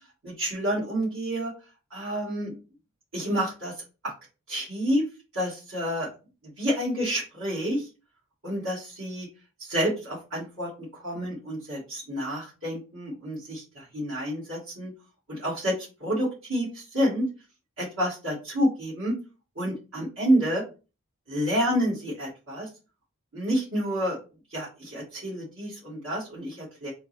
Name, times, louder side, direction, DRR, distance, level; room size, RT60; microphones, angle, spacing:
voice 1, 0.2-1.5 1.9-2.6 3.1-3.7 4.0-4.1 4.5-5.0 5.3-6.1 6.6-7.9 8.4-9.3 9.6-14.9 15.3-17.2 17.8-19.1 19.6-20.6 21.3-22.7 23.3-24.2 24.5-26.9, equal, 60° right, -9 dB, 1.9 m, -29 dB
3.5 x 3.1 x 4.0 m, 0.31 s
head